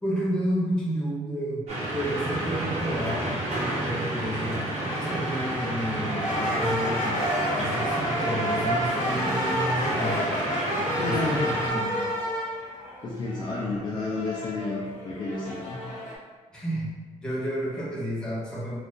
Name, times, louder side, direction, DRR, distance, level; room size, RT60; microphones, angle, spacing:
voice 1, 0.0-4.7 5.0-7.2 7.5-10.3 11.0-12.1 16.5-16.9 17.2-18.8, right 1 dB, 5° left, -7 dB, 0.8 m, -31 dB
sound 1, 1.7-11.7, right 1 dB, 60° right, 0.9 m, -31 dB
sound 2, 4.9-16.1, equal, 70° left, 0.7 m, -30 dB
voice 2, 10.9-11.6 13.0-15.8, left 2 dB, 40° left, -5 dB, 0.4 m, -31 dB
2.5 x 2.3 x 3.6 m, 1.3 s
wide cardioid pair, 170°, 13 cm